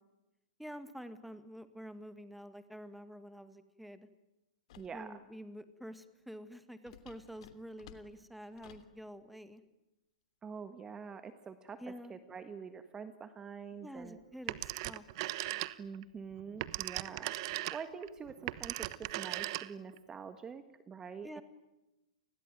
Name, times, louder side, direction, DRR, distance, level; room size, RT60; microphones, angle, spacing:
voice 1, 0.6-4.1 4.9-9.6 11.8-12.1 13.8-15.0 21.2-21.4, equal, ahead, 11 dB, 1.9 m, -48 dB
sound 1, 4.7-5.0 6.9-9.0, left 9 dB, 60° left, 2.9 m, -56 dB
voice 2, 4.8-5.2 10.4-11.8 12.1-14.2 15.8-21.4, right 6 dB, 15° right, 10 dB, 1.5 m, -46 dB
Telephone, 14.5-16.0 16.4-20.0, right 18 dB, 50° right, 1.1 m, -38 dB
29.5 x 20.5 x 9.3 m, 0.97 s
hypercardioid pair, 115°, 4 cm